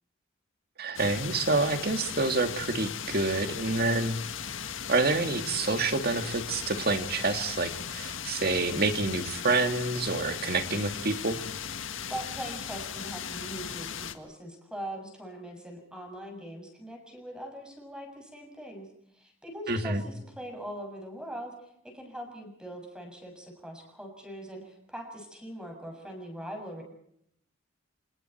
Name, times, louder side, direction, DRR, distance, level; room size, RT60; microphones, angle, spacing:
voice 1, 0.8-4.2 4.9-11.4 19.7-20.0, right 3 dB, 50° right, 7 dB, 2.3 m, -28 dB
sound 1, 1.0-14.2, left 8 dB, 85° left, 1.7 m, -37 dB
voice 2, 12.1-18.9 19.1-21.5 21.8-26.8, right 1 dB, 5° right, 3 dB, 7.0 m, -41 dB
29.0 x 27.0 x 4.6 m, 0.70 s
head